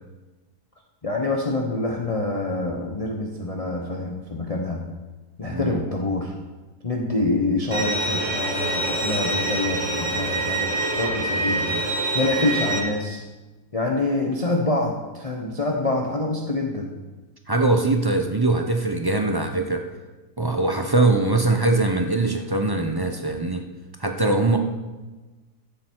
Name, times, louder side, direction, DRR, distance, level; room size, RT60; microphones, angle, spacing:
voice 1, 1.0-4.9 5.4-6.3 6.8-11.7 12.1-13.2 13.7-16.9, left 2 dB, 30° left, 0 dB, 0.8 m, -26 dB
voice 2, 5.5-5.8 11.6-11.8 17.5-19.9 20.4-23.6 24.0-24.6, right 2 dB, 25° right, 4 dB, 0.5 m, -22 dB
Bowed string instrument, 7.7-12.8, right 2 dB, 85° right, 2.7 m, -25 dB
14.5 x 7.6 x 4.6 m, 1.2 s
omnidirectional pair, 1.7 m